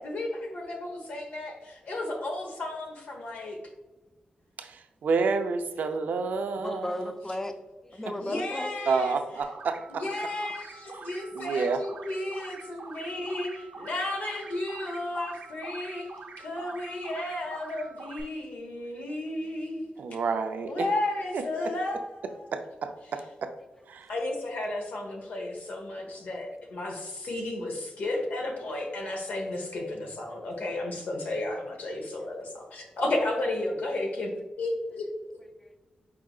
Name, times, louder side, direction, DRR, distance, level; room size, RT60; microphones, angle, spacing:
voice 1, 0.0-3.6 8.2-9.2 9.9-16.1 16.4-19.9 20.7-22.5 24.1-35.0, left 2 dB, 90° left, 1 dB, 1.1 m, -33 dB
voice 2, 4.6-7.1 8.9-10.0 11.3-11.8 20.0-20.9 21.3-21.4 22.5-23.5 23.9-24.1, right 4 dB, 90° right, 7 dB, 0.5 m, -29 dB
voice 3, 6.6-7.5 7.8-8.7 35.6-35.8, left 1 dB, 15° left, 7 dB, 0.5 m, -34 dB
sound 1, 9.4-18.2, right 4 dB, 75° right, 0.8 m, -45 dB
4.8 x 4.7 x 2.4 m, 1.1 s
wide cardioid pair, 110°, 3 cm